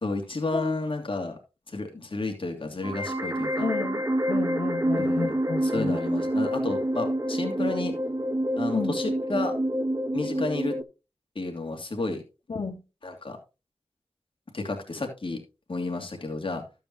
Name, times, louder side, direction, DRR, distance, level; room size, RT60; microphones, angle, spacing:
voice 1, 0.0-1.4 1.7-3.7 5.0-5.4 5.6-7.9 8.6-9.5 10.1-10.8 11.3-12.2 13.0-13.4 14.5-15.4 15.7-16.6, left 3 dB, 55° left, 2.8 m, -31 dB
voice 2, 0.5-0.9 3.6-6.0 8.7-8.9 12.5-12.8, left 4 dB, 80° left, 1.7 m, -32 dB
sound 1, 2.8-10.8, right 1 dB, 30° right, 1.1 m, -27 dB
12.5 x 8.9 x 2.8 m
cardioid pair, 50°, 10 cm